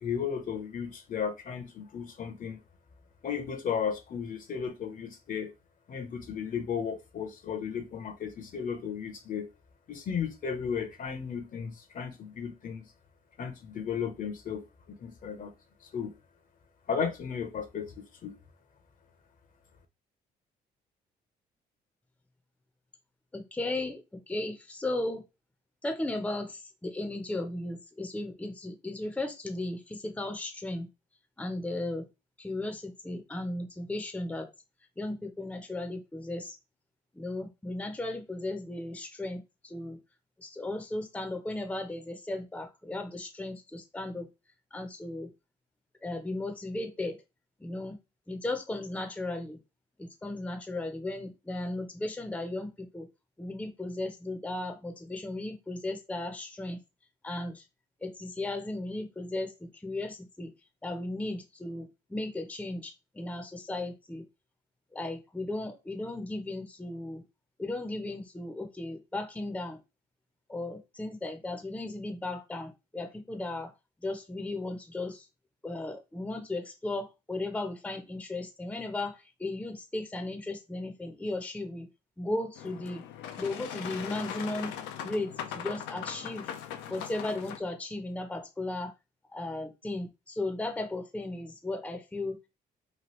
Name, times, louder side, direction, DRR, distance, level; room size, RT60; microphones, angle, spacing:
voice 1, 0.0-2.6 3.2-5.5 5.9-9.5 9.9-12.8 13.4-15.5 15.8-16.1 16.9-18.4, left 7 dB, 50° left, 0.7 m, -35 dB
voice 2, 23.3-25.2 25.8-30.9 31.4-32.1 32.4-34.5 35.0-36.6 37.1-40.0 40.4-44.3 44.7-45.3 46.0-47.2 47.6-48.0 48.3-49.6 50.0-53.1 53.4-56.8 57.2-57.6 58.0-60.5 60.8-64.2 64.9-67.2 67.6-69.8 70.5-73.7 74.0-75.3 75.6-81.9 82.2-83.0 83.4-84.7 85.0-86.4 86.9-88.9 89.3-92.5, left 2 dB, 5° left, 0.6 m, -36 dB
Boat Water vehicle, 82.6-87.6, left 9 dB, 85° left, 0.4 m, -40 dB
3.0 x 2.3 x 3.0 m
supercardioid pair, 70°, 18 cm